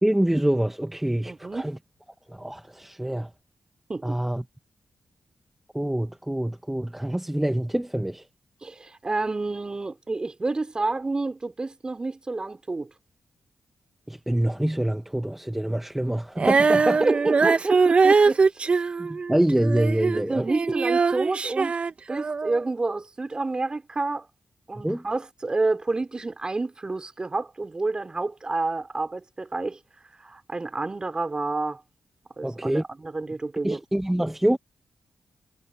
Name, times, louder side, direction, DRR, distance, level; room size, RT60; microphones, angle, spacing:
voice 1, 0.0-1.8 2.3-3.3 4.0-4.4 5.7-8.2 14.1-17.0 19.0-20.5 24.8-25.0 32.4-32.8 33.6-34.6, right 1 dB, 10° right, 1.4 m, -25 dB
voice 2, 1.2-1.7 3.9-4.2 8.6-12.9 17.0-18.9 20.1-21.8 22.1-24.3 24.7-29.8 30.2-31.8 32.4-33.8, right 3 dB, 30° right, 4.7 m, -29 dB
Female singing, 16.4-20.2 20.5-22.6, right 4 dB, 50° right, 1.7 m, -22 dB
cardioid pair, 55°, 3 cm